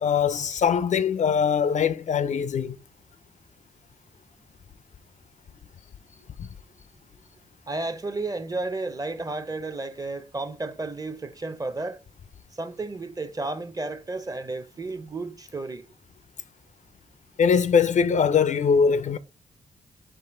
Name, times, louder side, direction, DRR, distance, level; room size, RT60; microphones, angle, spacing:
voice 1, 0.0-2.8 17.4-19.2, left 6 dB, 55° left, 0.4 m, -22 dB
voice 2, 7.7-12.0 12.5-15.8, right 2 dB, 25° right, 0.6 m, -32 dB
4.8 x 2.8 x 3.7 m
cardioid pair, 65°, 15 cm